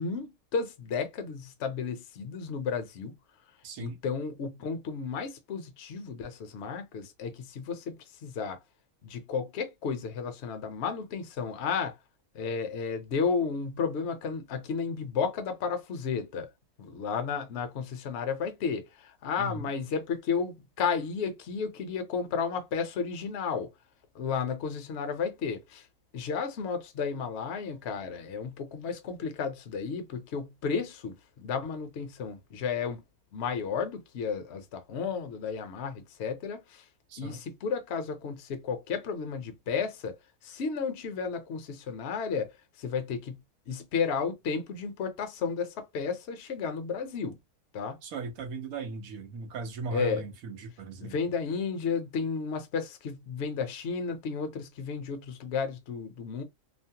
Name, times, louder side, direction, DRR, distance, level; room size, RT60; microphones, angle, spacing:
voice 1, 0.0-3.1 3.8-8.6 9.0-11.9 12.3-16.5 16.8-23.7 24.1-25.9 26.1-33.0 33.3-36.8 37.2-40.2 40.4-42.5 42.8-43.4 43.7-47.4 47.7-48.0 49.9-50.2 51.0-56.4, left 5 dB, 60° left, 0.8 m, -33 dB
voice 2, 3.6-4.0 19.4-19.6 37.1-37.4 48.0-51.1, right 3 dB, 90° right, 1.2 m, -37 dB
3.1 x 2.0 x 2.8 m
omnidirectional pair, 1.4 m